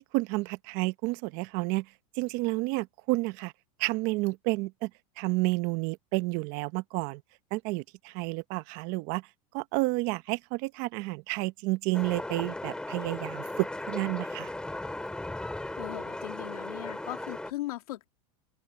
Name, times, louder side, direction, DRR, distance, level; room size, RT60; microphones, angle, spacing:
voice 1, 0.0-1.9 2.2-3.5 3.8-4.9 5.2-7.2 7.5-9.2 9.5-14.5, right 22 dB, 50° right, 0.9 m, -30 dB
sound 1, 11.9-17.5, left 1 dB, 5° left, 3.5 m, -37 dB
voice 2, 15.8-18.1, left 15 dB, 85° left, 2.6 m, -38 dB
open air
supercardioid pair, 150°, 19 cm